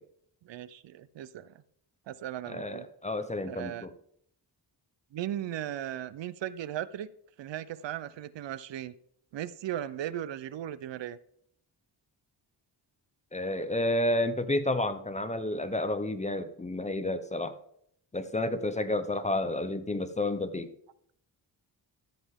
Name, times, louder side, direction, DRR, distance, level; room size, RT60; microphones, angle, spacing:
voice 1, 0.4-1.5 2.1-2.9 3.4-3.9 5.1-7.1 7.4-8.9 9.3-11.2, right 11 dB, 75° right, 17 dB, 0.6 m, -37 dB
voice 2, 2.5-3.9 13.3-17.6 18.1-20.7, left 1 dB, 15° left, 11 dB, 0.6 m, -30 dB
13.0 x 7.6 x 3.6 m, 0.68 s
wide cardioid pair, 130°, 44 cm